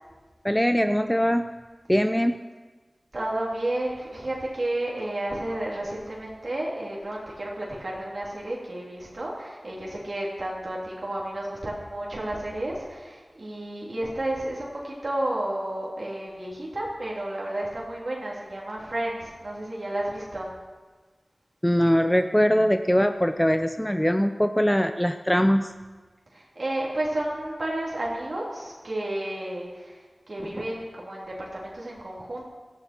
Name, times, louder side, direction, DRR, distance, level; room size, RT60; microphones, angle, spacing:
voice 1, 0.4-1.4 1.9-2.4 21.6-25.7, equal, 5° left, 8 dB, 0.5 m, -22 dB
voice 2, 3.1-20.5 26.3-32.4, right 1 dB, 60° right, -5 dB, 3.1 m, -32 dB
18.0 x 13.5 x 4.4 m, 1.3 s
wide cardioid pair, 65°, 0 cm